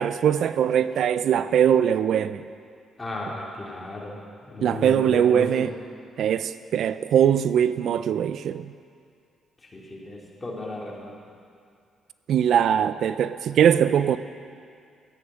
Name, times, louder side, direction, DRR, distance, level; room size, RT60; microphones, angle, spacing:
voice 1, 0.0-2.4 4.6-5.7 6.2-8.7 12.3-14.2, right 9 dB, 70° right, 13 dB, 0.4 m, -21 dB
voice 2, 3.0-4.2 4.4-5.5 9.7-11.1, left 2 dB, 25° left, -3 dB, 3.0 m, -34 dB
13.0 x 9.6 x 6.3 m, 2.3 s
cardioid pair, 90°, 0 cm